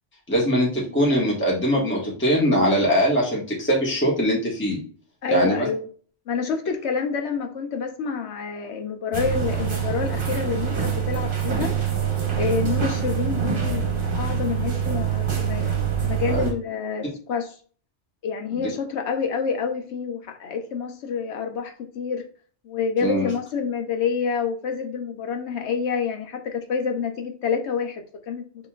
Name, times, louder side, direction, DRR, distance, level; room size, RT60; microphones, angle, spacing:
voice 1, 0.3-4.8 5.3-5.7 16.3-16.5 18.5-18.6 23.0-23.3, equal, 10° left, -4 dB, 1.3 m, -22 dB
voice 2, 5.2-5.9 6.3-11.7 12.4-15.7 16.0-17.5 18.2-22.2 22.6-28.5, left 6 dB, 70° left, 5 dB, 1.0 m, -28 dB
sound 1, 9.1-16.5, right 8 dB, 50° right, 1.2 m, -25 dB
6.6 x 2.9 x 2.3 m, 0.43 s
omnidirectional pair, 1.2 m